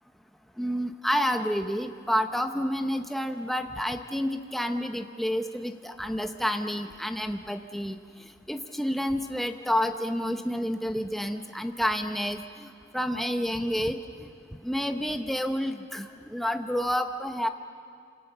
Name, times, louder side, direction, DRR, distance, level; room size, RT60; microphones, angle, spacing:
voice 1, 0.6-8.0 8.5-14.0 14.6-17.5, equal, ahead, 6 dB, 0.9 m, -29 dB
28.0 x 27.0 x 6.9 m, 2.2 s
head